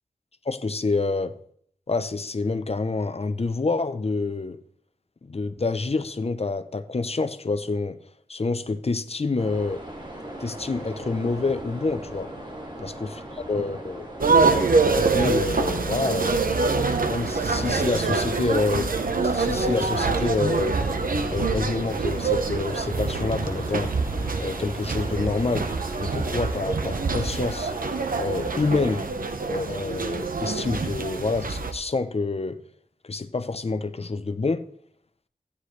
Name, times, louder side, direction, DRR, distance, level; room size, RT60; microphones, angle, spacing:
voice 1, 0.5-1.3 1.9-4.6 5.2-8.0 8.3-9.8 10.4-12.3 12.8-14.1 15.0-20.8 21.3-23.9 24.4-25.7 26.0-27.7 28.2-29.1 29.4-32.6 33.0-34.6, left 3 dB, 45° left, 0.7 m, -27 dB
sound 1, 9.4-29.1, right 1 dB, 30° right, 2.5 m, -39 dB
sound 2, 14.2-31.7, right 4 dB, 85° right, 1.0 m, -25 dB
15.5 x 9.8 x 3.3 m
wide cardioid pair, 65°, 14 cm